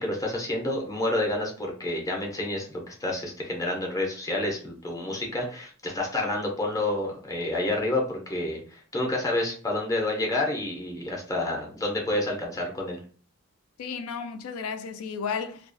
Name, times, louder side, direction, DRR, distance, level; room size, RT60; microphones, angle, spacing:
voice 1, 0.0-13.0, left 1 dB, 15° left, 0.5 m, -29 dB
voice 2, 13.8-15.7, left 6 dB, 80° left, 0.4 m, -33 dB
2.3 x 2.2 x 2.4 m
head